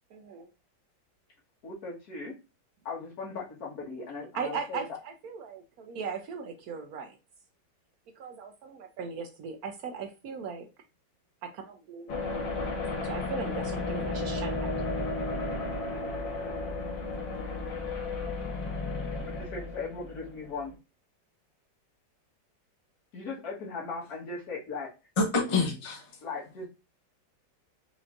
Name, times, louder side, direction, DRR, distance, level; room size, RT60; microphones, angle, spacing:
voice 1, 0.1-0.5 4.3-7.2 8.2-10.7 11.4-14.7, right 5 dB, 70° right, 0.9 m, -39 dB
voice 2, 1.6-2.3 2.9-5.0 19.3-20.7 23.1-24.9 26.2-26.7, left 4 dB, 60° left, 1.8 m, -38 dB
sound 1, 12.1-20.7, left 3 dB, 85° left, 1.9 m, -33 dB
voice 3, 25.2-26.1, left 3 dB, 25° left, 0.6 m, -27 dB
4.9 x 3.0 x 2.5 m
omnidirectional pair, 2.0 m